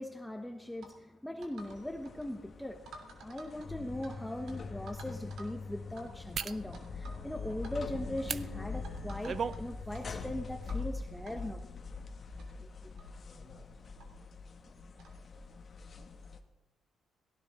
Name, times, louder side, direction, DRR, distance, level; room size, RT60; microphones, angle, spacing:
voice 1, 0.0-2.8 3.2-11.6 12.6-12.7, left 1 dB, 5° left, 5 dB, 1.2 m, -40 dB
sound 1, 0.8-1.0 1.4-1.8 2.1-2.3 2.9-4.2 4.5-4.6 4.9-5.5 6.0-6.1 6.4-7.2 7.5-7.7 8.2-8.3 8.8-9.6 9.9-10.0 10.7-10.9 11.3-11.4 12.1-12.2 12.4-12.5 13.0-13.1 14.0-14.1 15.0-15.2, right 3 dB, 75° right, 3.0 m, -51 dB
sound 2, 1.6-16.4, left 4 dB, 40° left, 1.6 m, -43 dB
sound 3, 3.5-3.6 4.2-4.4 6.3-6.6 8.2-8.4 9.0-9.6 10.0-10.1, right 6 dB, 50° right, 0.6 m, -36 dB
18.0 x 16.5 x 3.8 m, 1.1 s
cardioid pair, 90°, 0 cm